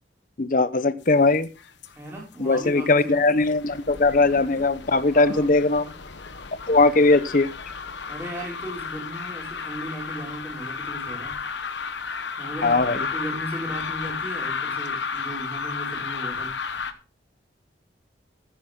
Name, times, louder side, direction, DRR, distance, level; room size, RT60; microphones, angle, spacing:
voice 1, 0.4-1.5 2.4-5.9 6.7-7.5 12.6-13.1, left 3 dB, 45° left, 14 dB, 0.8 m, -20 dB
sound 1, 1.0-2.0 2.2-16.9, left 5 dB, 70° left, 1.2 m, -33 dB
voice 2, 1.9-3.1 5.1-5.5 6.7-7.1 8.1-11.4 12.4-16.6, right 1 dB, 15° right, -4 dB, 5.5 m, -36 dB
14.5 x 10.5 x 3.7 m, 0.31 s
head